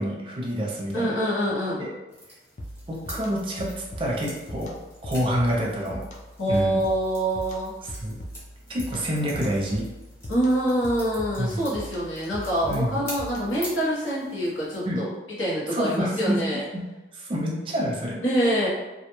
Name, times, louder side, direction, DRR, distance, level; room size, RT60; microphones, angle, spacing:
voice 1, 0.0-1.2 1.8-1.9 2.9-4.7 5.0-6.0 6.5-6.8 7.8-8.2 8.7-9.9 11.4-11.6 12.7-13.0 14.9-15.0 15.7-16.4 16.7-16.8 17.1-18.2, equal, 30° right, -3 dB, 0.5 m, -27 dB
voice 2, 0.9-1.8 6.4-7.7 10.3-15.1 15.4-16.6 18.1-18.7, equal, 90° left, -7 dB, 1.0 m, -25 dB
sound 1, 2.1-14.9, equal, 15° left, 0.7 m, -45 dB
sound 2, 2.6-13.7, equal, 40° left, 0.4 m, -41 dB
2.4 x 2.2 x 3.0 m, 1.1 s
head